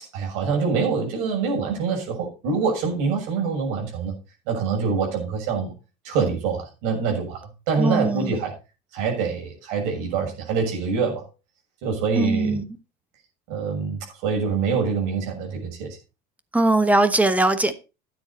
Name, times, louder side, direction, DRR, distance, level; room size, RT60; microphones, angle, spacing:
voice 1, 0.1-4.1 4.5-5.7 6.0-8.5 8.9-11.3 11.8-12.6 13.5-16.0, right 5 dB, 70° right, 6.8 m, -25 dB
voice 2, 7.8-8.4 12.1-12.6 16.5-17.7, right 2 dB, 5° right, 1.1 m, -20 dB
13.0 x 9.5 x 4.2 m
cardioid pair, 150°, 21 cm